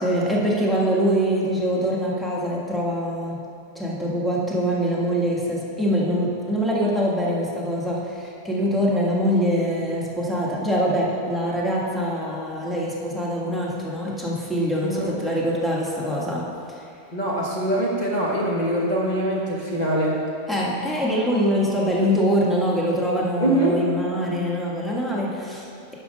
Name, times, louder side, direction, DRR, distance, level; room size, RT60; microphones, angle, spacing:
voice 1, 0.0-3.4 3.7-16.4 20.5-25.9, equal, ahead, -5 dB, 1.3 m, -24 dB
voice 2, 14.8-15.2 17.1-20.2 23.4-23.8, right 1 dB, 30° left, -4 dB, 1.2 m, -23 dB
10.5 x 5.9 x 5.4 m, 2.6 s
omnidirectional pair, 1.7 m